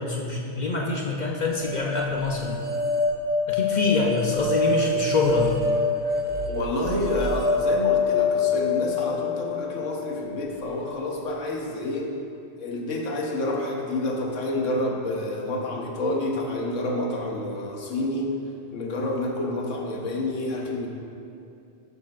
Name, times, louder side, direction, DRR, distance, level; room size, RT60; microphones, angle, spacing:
voice 1, 0.0-2.6 3.5-5.6, left 2 dB, 45° left, -1 dB, 0.6 m, -25 dB
sound 1, 1.6-10.8, left 4 dB, 15° right, 0.3 m, -26 dB
voice 2, 6.5-12.1 12.6-18.3 18.7-20.9, left 1 dB, 70° left, 0 dB, 1.3 m, -28 dB
12.0 x 6.8 x 2.4 m, 2.6 s
omnidirectional pair, 1.3 m